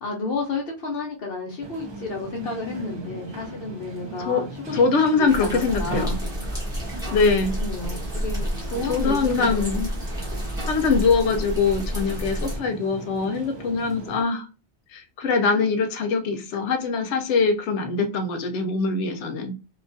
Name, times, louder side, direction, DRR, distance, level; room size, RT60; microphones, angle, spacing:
voice 1, 0.0-4.8 5.2-6.2 7.0-9.7, left 3 dB, 60° left, 0 dB, 0.8 m, -32 dB
sound 1, 1.6-14.2, right 2 dB, 35° right, 0.5 m, -39 dB
voice 2, 4.7-6.2 7.1-7.5 8.9-9.9 10.7-14.5 14.9-19.5, left 4 dB, 85° left, 6 dB, 0.9 m, -23 dB
sound 2, 5.3-12.6, equal, 5° right, 1.0 m, -30 dB
2.8 x 2.3 x 2.5 m, 0.30 s
omnidirectional pair, 1.2 m